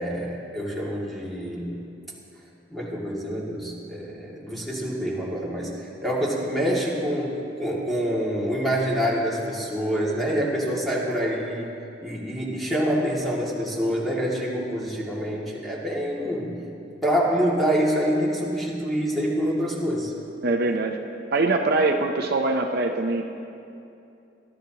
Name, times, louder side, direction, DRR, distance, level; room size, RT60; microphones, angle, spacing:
voice 1, 0.0-1.7 2.7-11.7 12.0-16.5 17.0-20.1, equal, ahead, -5 dB, 2.2 m, -26 dB
voice 2, 20.4-21.0 21.3-23.2, right 2 dB, 60° right, 3 dB, 0.7 m, -23 dB
21.5 x 12.5 x 2.9 m, 2.7 s
head